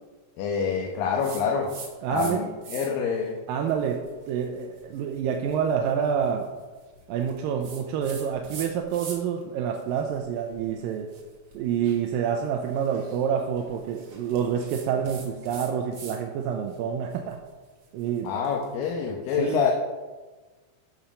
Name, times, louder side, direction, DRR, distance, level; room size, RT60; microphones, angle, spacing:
voice 1, 0.4-1.7 2.1-3.4 18.2-19.7, left 6 dB, 85° left, 1 dB, 2.7 m, -26 dB
sound 1, 1.2-2.3 2.6-3.1 3.6-9.4 9.7-16.2 16.5-18.7, right 4 dB, 50° right, 1.6 m, -45 dB
voice 2, 2.0-2.4 3.5-6.5 7.1-11.1 11.5-17.4 17.9-18.3 19.4-19.7, right 8 dB, 90° right, 2 dB, 2.5 m, -27 dB
12.5 x 7.3 x 5.1 m, 1.3 s
omnidirectional pair, 4.0 m